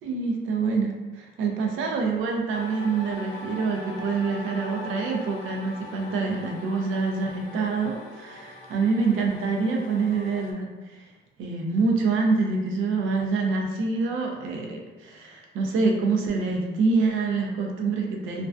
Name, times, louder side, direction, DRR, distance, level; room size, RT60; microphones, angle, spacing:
voice 1, 0.0-11.0 11.4-18.5, right 4 dB, 70° right, 1 dB, 0.5 m, -26 dB
sound 1, 2.5-10.5, left 2 dB, 80° left, 0.4 m, -42 dB
2.4 x 2.2 x 2.3 m, 1.2 s
cardioid pair, 100°, 21 cm